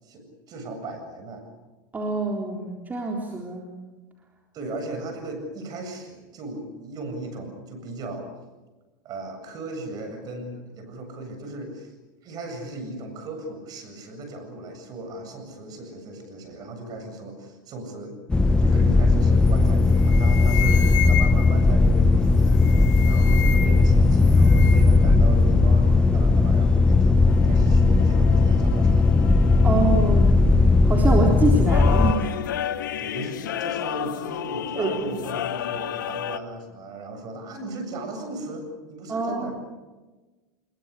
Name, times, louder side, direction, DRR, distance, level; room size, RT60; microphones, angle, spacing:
voice 1, 0.0-1.5 4.5-8.3 9.0-11.9 12.2-18.2 18.6-22.6 23.1-29.3 33.0-39.5, right 2 dB, 40° right, 6 dB, 7.9 m, -37 dB
voice 2, 1.9-3.7 29.6-30.3 30.8-32.4 32.9-33.0 34.8-35.2 39.1-39.6, right 3 dB, 15° right, 0 dB, 3.7 m, -26 dB
sound 1, 18.3-32.1, left 3 dB, 10° left, 1.3 m, -17 dB
sound 2, 19.5-19.7 20.0-21.6 22.5-23.9 24.2-25.0, left 11 dB, 70° left, 2.9 m, -31 dB
sound 3, 27.3-36.4, left 11 dB, 90° left, 1.3 m, -32 dB
25.5 x 22.0 x 8.4 m, 1.2 s
supercardioid pair, 120°, 10 cm